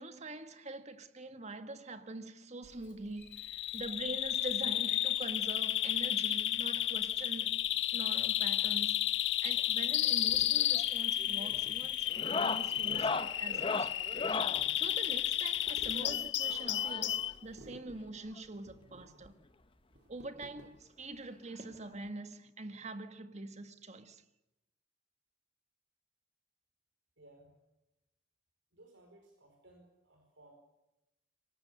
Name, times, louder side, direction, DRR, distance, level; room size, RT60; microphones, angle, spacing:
voice 1, 0.0-14.1 14.8-19.3 20.1-24.2, right 2 dB, 40° right, 1.8 m, -44 dB
Bird vocalization bird call bird song, 3.3-17.3, left 12 dB, 75° left, 1.3 m, -32 dB
sound 1, 10.3-21.2, right 1 dB, 65° right, 3.7 m, -56 dB
sound 2, 10.6-10.9 11.2-11.5 12.1-14.6 15.9-17.3 18.4-18.5 18.7-18.8 19.2-19.3 20.6-20.7 22.1-22.2, left 4 dB, 30° left, 0.9 m, -37 dB
voice 2, 27.2-27.5 28.7-30.5, right 1 dB, 85° right, 4.9 m, -60 dB
27.0 x 24.5 x 6.8 m
head